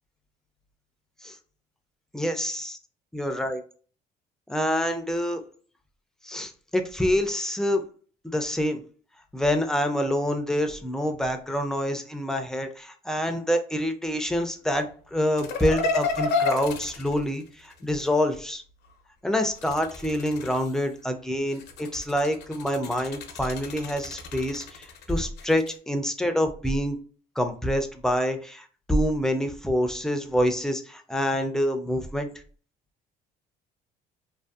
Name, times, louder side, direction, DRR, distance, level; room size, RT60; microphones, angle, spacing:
voice 1, 2.1-2.8 3.1-3.6 4.5-5.4 6.2-7.8 8.2-8.8 9.3-18.6 19.2-27.0 27.4-32.3, equal, 5° left, 5 dB, 0.4 m, -26 dB
sound 1, 15.4-18.1 19.4-20.9 21.5-25.7, left 4 dB, 75° left, 0.6 m, -32 dB
2.6 x 2.4 x 2.3 m, 0.42 s
cardioid pair, 110°, 17 cm